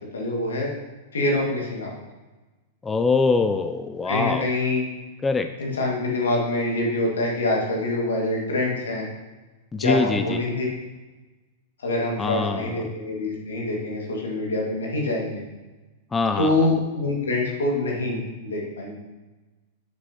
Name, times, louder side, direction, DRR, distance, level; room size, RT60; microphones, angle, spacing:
voice 1, 0.1-0.7 1.1-1.9 4.1-4.9 5.6-9.1 9.8-10.7 11.8-15.4 16.4-19.0, left 2 dB, 80° left, -3 dB, 2.2 m, -25 dB
voice 2, 2.8-4.5 5.2-5.5 9.7-10.4 12.2-12.9 16.1-16.7, left 4 dB, 15° left, 8 dB, 0.4 m, -23 dB
8.0 x 6.8 x 3.0 m, 1.2 s
hypercardioid pair, 100°, 0 cm